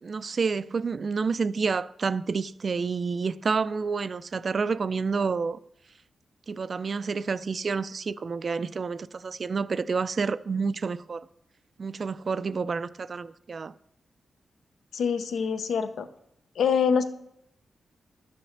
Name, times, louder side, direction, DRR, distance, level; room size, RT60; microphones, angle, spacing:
voice 1, 0.0-5.6 6.5-11.2 11.8-13.7, right 5 dB, 45° right, 0.4 m, -29 dB
voice 2, 14.9-16.1 16.6-17.0, left 6 dB, 90° left, 0.8 m, -25 dB
12.0 x 8.5 x 3.3 m
wide cardioid pair, 115°, 0 cm